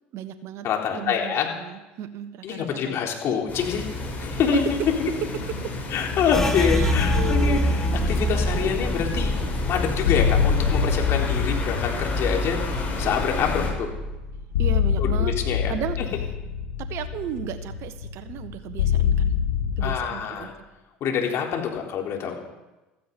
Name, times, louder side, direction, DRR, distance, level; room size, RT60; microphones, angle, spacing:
voice 1, 0.1-0.6 0.9-3.0 4.5-4.6 5.6-5.7 6.6-7.6 14.6-15.4 15.7-16.0 16.8-19.3 19.8-20.5, right 10 dB, 55° right, 9 dB, 1.4 m, -35 dB
voice 2, 0.6-1.5 2.4-3.9 4.2-5.1 5.9-9.4 9.7-12.6 13.0-13.9 15.0-15.7 19.8-20.5 21.0-22.4, left 7 dB, 50° left, 1 dB, 3.8 m, -26 dB
sound 1, 3.5-13.7, left 2 dB, 30° left, 7.3 m, -29 dB
sound 2, 6.3-15.7 16.0-17.3 17.6-18.1 18.5-19.1, equal, 10° left, 1.9 m, -30 dB
sound 3, 6.7-20.0, left 8 dB, 90° left, 1.3 m, -27 dB
15.5 x 15.0 x 5.4 m, 1.1 s
hypercardioid pair, 75°, 5 cm